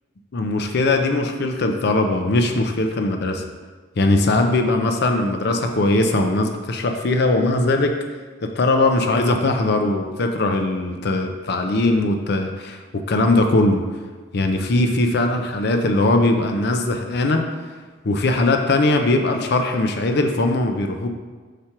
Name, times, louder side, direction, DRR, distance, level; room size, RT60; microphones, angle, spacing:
voice 1, 0.3-3.4 4.0-8.0 8.4-13.8 14.3-17.5 18.0-21.1, left 2 dB, 55° left, 5 dB, 0.5 m, -20 dB
5.0 x 4.4 x 5.8 m, 1.4 s
head